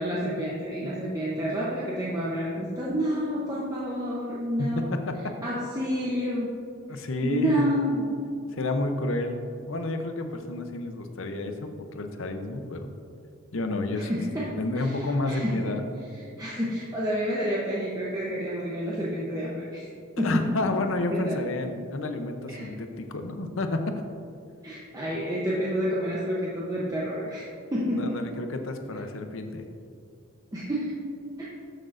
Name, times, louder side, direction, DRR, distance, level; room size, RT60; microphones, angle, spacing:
voice 1, 0.0-4.9 5.4-6.5 6.9-8.1 13.9-15.8 16.1-19.9 20.2-20.7 21.1-21.4 22.5-22.8 24.6-28.3 30.5-31.0 31.4-31.5, equal, 15° right, -6 dB, 0.8 m, -29 dB
voice 2, 4.6-5.1 6.9-7.7 8.5-12.9 13.5-14.1 14.6-15.8 20.2-23.9 27.9-29.6, left 2 dB, 65° left, 6 dB, 0.7 m, -30 dB
12.5 x 6.5 x 2.5 m, 2.4 s
head